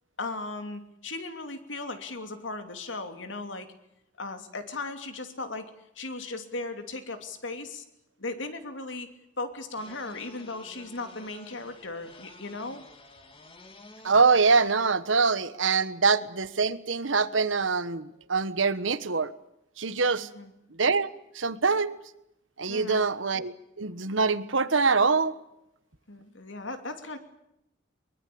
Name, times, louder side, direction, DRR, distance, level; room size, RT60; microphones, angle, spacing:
voice 1, 0.2-3.7 4.2-7.8 8.2-9.1 9.4-12.8 20.3-20.5 22.7-23.1 26.1-27.2, left 3 dB, 70° left, 7 dB, 2.9 m, -37 dB
sound 1, 9.7-14.8, left 2 dB, 30° left, 2.7 m, -51 dB
voice 2, 14.0-19.3 19.8-20.3 20.7-21.1 21.3-22.0 22.6-25.3, right 4 dB, 80° right, 14 dB, 1.3 m, -24 dB
23.5 x 22.5 x 8.7 m, 0.81 s
head